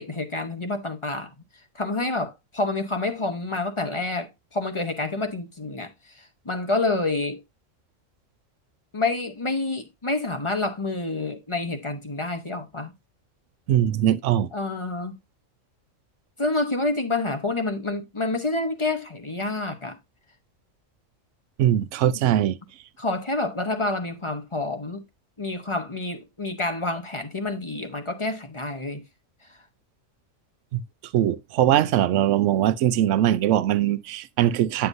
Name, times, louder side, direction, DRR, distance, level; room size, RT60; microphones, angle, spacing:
voice 1, 0.0-1.3 1.7-5.9 6.4-7.4 8.9-12.9 14.5-15.1 16.4-20.0 23.0-25.0 25.4-29.0, left 2 dB, 25° left, 0.9 m, -28 dB
voice 2, 13.7-14.5 21.6-22.6 30.7-30.8 31.1-34.9, right 11 dB, 75° right, 0.9 m, -21 dB
9.5 x 6.8 x 2.6 m
omnidirectional pair, 1.3 m